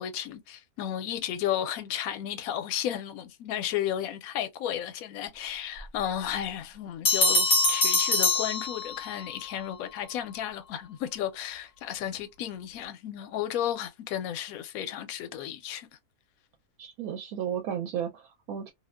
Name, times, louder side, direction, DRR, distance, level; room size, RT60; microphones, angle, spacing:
voice 1, 0.0-15.9, left 10 dB, 75° left, 1.0 m, -33 dB
Bell, 7.0-9.3, left 3 dB, 50° left, 0.7 m, -24 dB
voice 2, 16.8-18.7, right 9 dB, 80° right, 1.0 m, -34 dB
2.6 x 2.1 x 2.2 m
omnidirectional pair, 1.5 m